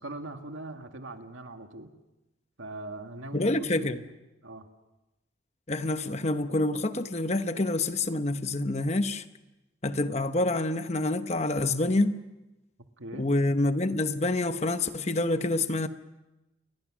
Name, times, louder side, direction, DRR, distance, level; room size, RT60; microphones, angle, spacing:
voice 1, 0.0-1.9 2.6-4.1 4.4-4.7 13.0-13.3, right 2 dB, 85° right, 2.0 m, -41 dB
voice 2, 3.3-4.0 5.7-9.2 9.8-12.2 13.2-15.9, left 2 dB, 35° left, 1.0 m, -27 dB
29.5 x 22.5 x 6.3 m
head